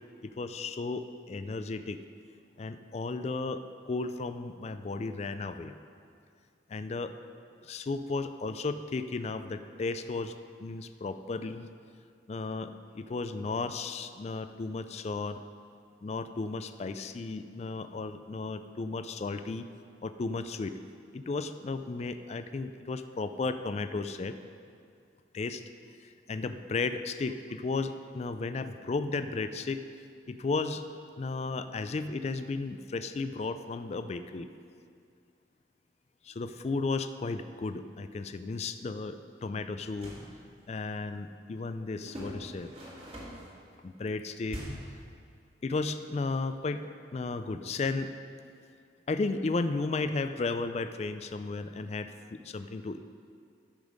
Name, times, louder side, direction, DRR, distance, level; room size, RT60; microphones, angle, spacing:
voice 1, 0.2-2.0 2.6-5.7 6.7-7.1 7.6-10.3 10.6-11.7 12.3-15.4 16.0-19.7 20.0-20.7 21.1-24.4 25.3-25.6 26.0-29.8 30.3-30.8 31.2-34.5 36.2-39.2 39.4-40.1 40.7-42.7 43.8-44.6 45.6-46.9 47.1-48.1 49.1-53.0, left 3 dB, 35° left, 10 dB, 0.3 m, -34 dB
sound 1, 40.0-40.3 42.1-43.5 44.5-45.0, equal, 35° right, 1.9 m, -42 dB
13.0 x 5.3 x 5.1 m, 2.3 s
head